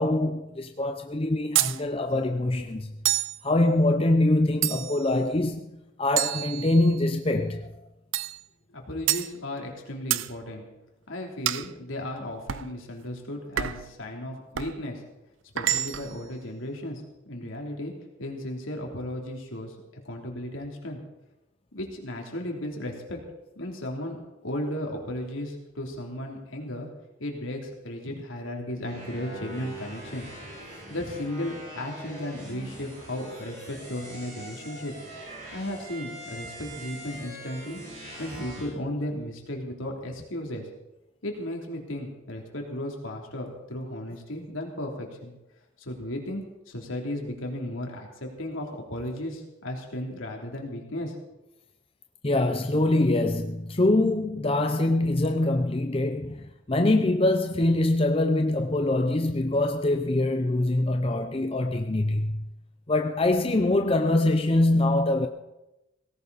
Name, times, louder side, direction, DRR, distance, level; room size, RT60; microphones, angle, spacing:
voice 1, 0.0-2.9 3.4-5.6 6.0-7.7 52.2-62.5 62.9-65.3, left 2 dB, 25° left, 0.6 m, -24 dB
sound 1, 1.6-1.8 3.1-3.4 4.6-5.1 6.2-7.1 8.1-8.4 9.1-9.3 10.1-10.3 11.5-11.7 12.5-12.7 13.6-13.9 14.6-14.8 15.6-16.2, right 13 dB, 75° right, 0.5 m, -28 dB
voice 2, 8.7-10.6 11.1-15.0 15.5-17.0 17.2-17.9 18.2-19.7 20.0-21.0 21.7-23.2 23.5-24.2 24.4-26.9 27.2-30.3 30.9-35.0 35.5-37.8 38.2-40.6 41.2-45.3 45.8-51.1, left 1 dB, 80° left, 3.2 m, -35 dB
sound 2, 28.8-38.7, right 1 dB, 40° right, 7.8 m, -42 dB
18.0 x 16.5 x 4.1 m
head